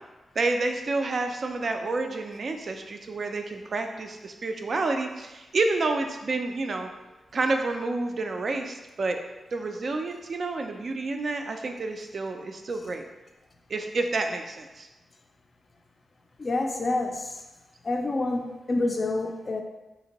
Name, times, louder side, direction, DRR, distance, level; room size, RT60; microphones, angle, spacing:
voice 1, 0.4-6.9 7.3-9.2 9.5-13.0 13.7-14.9, right 3 dB, 55° right, 5 dB, 0.3 m, -29 dB
voice 2, 16.4-17.4 17.8-19.6, left 2 dB, 40° left, 3 dB, 0.3 m, -28 dB
2.8 x 2.5 x 2.9 m, 1.1 s
cardioid pair, 75°, 0 cm